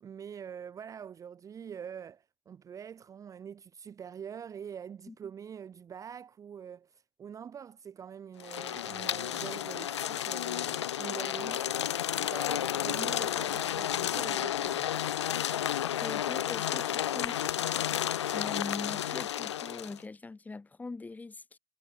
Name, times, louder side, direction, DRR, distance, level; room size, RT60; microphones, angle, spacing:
voice 1, 0.0-14.9, right 8 dB, 25° right, 0.9 m, -45 dB
sound 1, 8.4-20.0, left 11 dB, 90° left, 0.4 m, -32 dB
voice 2, 16.0-17.6 18.3-21.6, left 3 dB, 10° left, 2.1 m, -42 dB
hypercardioid pair, 105°, 14 cm